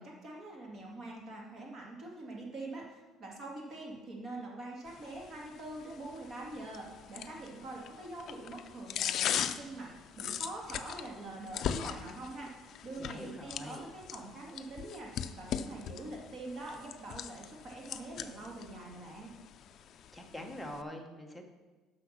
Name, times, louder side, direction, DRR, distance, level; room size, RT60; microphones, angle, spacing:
voice 1, 0.0-9.9 10.2-12.5 12.8-15.1 15.4-19.3, right 2 dB, 35° right, -1 dB, 2.2 m, -44 dB
sound 1, 4.9-20.8, left 9 dB, 45° left, 0.5 m, -40 dB
voice 2, 13.0-13.9 20.1-21.5, left 1 dB, ahead, 3 dB, 1.0 m, -44 dB
9.9 x 6.3 x 6.1 m, 1.3 s
cardioid pair, 170°, 0 cm